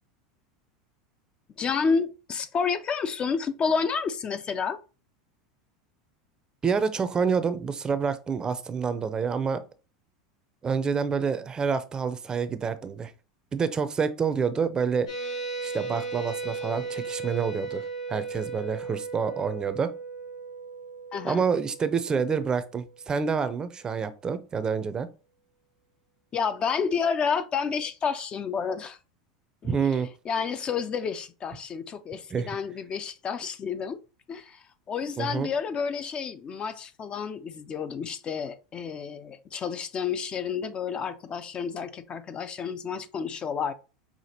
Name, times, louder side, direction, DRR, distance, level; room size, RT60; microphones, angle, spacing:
voice 1, 1.6-4.8 21.1-21.4 26.3-29.0 29.6-29.9 30.3-34.0 34.3-43.7, left 6 dB, 30° left, 0.4 m, -30 dB
voice 2, 6.6-9.6 10.6-13.1 13.5-15.1 15.6-19.9 21.2-25.1 29.6-30.1 32.3-32.6 35.2-35.5, right 6 dB, 25° right, 0.5 m, -28 dB
sound 1, 15.1-23.1, right 4 dB, 85° left, 1.4 m, -36 dB
5.8 x 2.5 x 2.8 m
hypercardioid pair, 105°, 3 cm